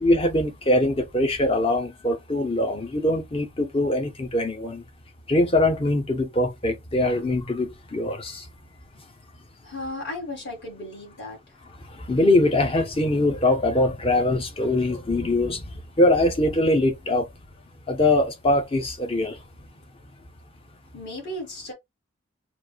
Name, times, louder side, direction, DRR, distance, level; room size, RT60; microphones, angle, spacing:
voice 1, 0.0-4.8 5.3-8.4 12.1-15.6 16.0-17.2 17.9-19.4, left 1 dB, 25° left, 0.7 m, -22 dB
voice 2, 9.6-11.4 20.9-21.7, left 1 dB, 55° left, 2.3 m, -35 dB
5.8 x 2.4 x 2.4 m
head